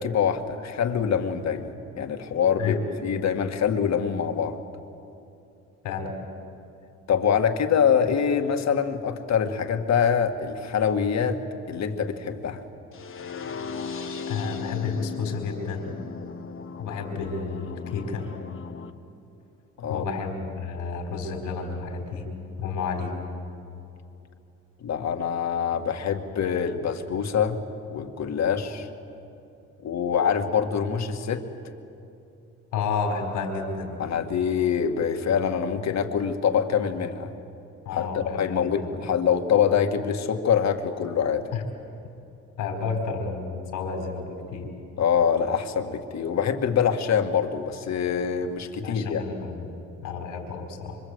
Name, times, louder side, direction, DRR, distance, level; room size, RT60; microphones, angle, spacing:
voice 1, 0.0-2.8 3.0-4.6 7.1-11.4 11.7-12.6 19.8-20.0 24.8-27.6 27.9-28.9 29.8-31.4 34.0-37.3 37.9-41.5 45.0-49.2, left 7 dB, 60° left, 6 dB, 2.0 m, -25 dB
sound 1, 12.9-18.9, left 5 dB, 45° left, 1.3 m, -37 dB
voice 2, 14.3-15.9 16.8-18.3 19.9-22.3 22.6-23.1 32.7-34.0 37.8-39.0 41.5-41.6 42.6-44.7 48.8-49.7 50.0-51.0, left 5 dB, 90° left, 3 dB, 4.5 m, -31 dB
26.5 x 25.0 x 8.1 m, 2.7 s
cardioid pair, 90°, 30 cm